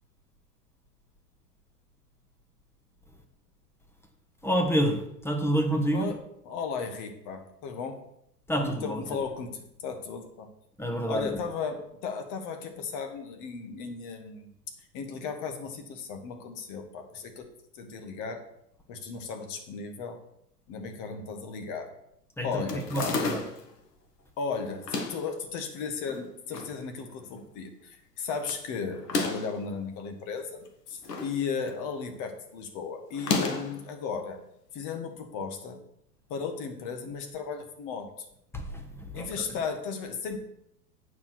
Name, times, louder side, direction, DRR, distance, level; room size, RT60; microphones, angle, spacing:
voice 1, 4.4-6.0 8.5-9.2 10.8-11.4 22.4-23.4 38.5-39.5, right 1 dB, 5° left, 3 dB, 1.2 m, -28 dB
voice 2, 6.4-8.0 8.6-10.5 11.1-14.5 14.9-17.5 17.7-18.4 18.9-20.2 20.7-21.9 22.4-23.2 24.4-30.6 30.9-34.4 34.7-35.8 36.3-38.3 39.1-40.4, left 5 dB, 40° left, 6 dB, 1.6 m, -35 dB
sound 1, 22.7-23.7 24.7-25.3 26.1-26.7 27.1-27.2 27.4-27.5 28.9-29.6 30.6-31.4 31.7-32.0 33.1-33.8, left 3 dB, 75° left, 1.4 m, -31 dB
8.4 x 4.9 x 6.1 m, 0.77 s
figure-of-eight pair, 100°, 48 cm